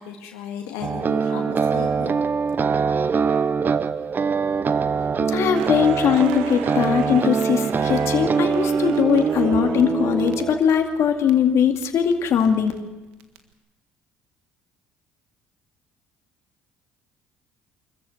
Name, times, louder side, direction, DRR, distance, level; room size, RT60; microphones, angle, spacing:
voice 1, 0.0-2.2, left 8 dB, 75° left, 2 dB, 2.0 m, -35 dB
sound 1, 0.8-10.6, right 5 dB, 35° right, 0.9 m, -23 dB
voice 2, 5.2-12.7, left 8 dB, 60° left, 5 dB, 2.3 m, -20 dB
Crackle, 5.5-11.3 11.6-13.4, right 10 dB, 80° right, 1.7 m, -40 dB
25.0 x 14.5 x 8.3 m, 1.1 s
hypercardioid pair, 65°, 5 cm